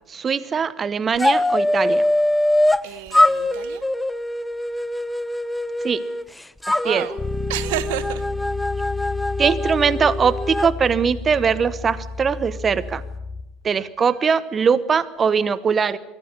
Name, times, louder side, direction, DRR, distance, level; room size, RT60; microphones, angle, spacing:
voice 1, 0.1-2.0 5.8-6.0 6.8-7.1 9.4-13.0 13.6-16.0, right 6 dB, 30° right, 1.0 m, -21 dB
sound 1, 1.2-2.8 3.1-6.2 6.6-10.7, left 1 dB, 5° left, 0.7 m, -22 dB
voice 2, 2.8-3.8 6.8-7.2 7.5-8.2, right 13 dB, 70° right, 1.3 m, -30 dB
Bass guitar, 7.2-13.4, left 3 dB, 30° left, 5.6 m, -31 dB
23.0 x 15.5 x 9.8 m
hypercardioid pair, 75°, 0 cm